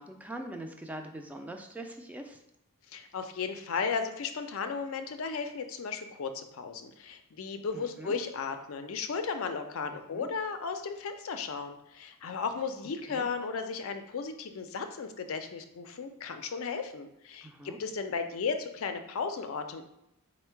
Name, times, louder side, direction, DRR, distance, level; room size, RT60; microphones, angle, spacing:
voice 1, 0.0-2.4 7.7-8.1 9.9-10.3 13.1-13.3 17.4-17.8, right 1 dB, 5° right, 4 dB, 0.3 m, -43 dB
voice 2, 2.9-19.8, left 5 dB, 65° left, 7 dB, 0.4 m, -35 dB
4.5 x 2.1 x 4.4 m, 0.84 s
head